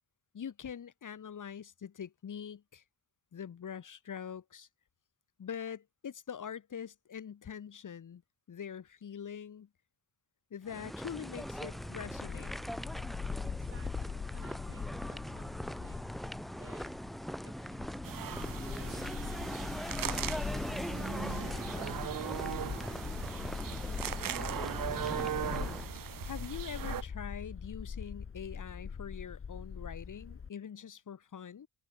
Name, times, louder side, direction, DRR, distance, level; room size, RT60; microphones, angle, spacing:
voice 1, 0.3-2.8 3.3-4.7 5.4-8.2 8.5-9.7 10.5-12.5 25.4-31.7, left 8 dB, 60° left, 2.6 m, -44 dB
sound 1, 10.7-25.9, equal, ahead, 0.6 m, -41 dB
Bark, 11.3-30.5, left 6 dB, 35° left, 1.4 m, -42 dB
voice 2, 13.4-16.1 16.6-17.0 17.4-19.6 22.3-24.3, right 5 dB, 35° right, 3.5 m, -58 dB
sound 2, 18.0-27.0, right 10 dB, 65° right, 1.1 m, -39 dB
cardioid pair, 110°, 36 cm